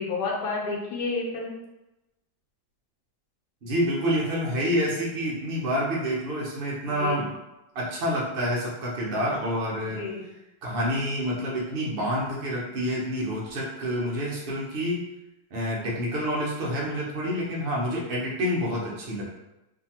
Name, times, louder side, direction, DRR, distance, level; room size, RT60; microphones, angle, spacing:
voice 1, 0.0-1.6 6.9-7.2 9.8-10.3, left 4 dB, 75° left, -2 dB, 1.3 m, -30 dB
voice 2, 3.6-7.3 7.7-10.1 10.6-15.0 15.5-19.2, equal, 80° right, -4 dB, 0.5 m, -28 dB
2.7 x 2.5 x 2.8 m, 0.97 s
omnidirectional pair, 1.8 m